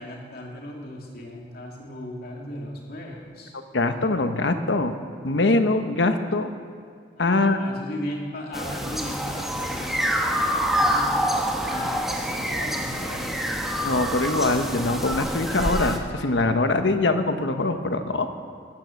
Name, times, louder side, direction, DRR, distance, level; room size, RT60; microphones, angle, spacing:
voice 1, 0.0-3.5 7.2-11.2 11.6-13.4, left 1 dB, 60° left, -1 dB, 2.6 m, -37 dB
voice 2, 3.7-5.0 5.2-6.5 7.2-7.6 13.8-18.3, left 2 dB, 80° left, 8 dB, 1.0 m, -23 dB
sound 1, 8.5-16.0, equal, ahead, 1.2 m, -26 dB
14.0 x 10.0 x 7.1 m, 2.3 s
head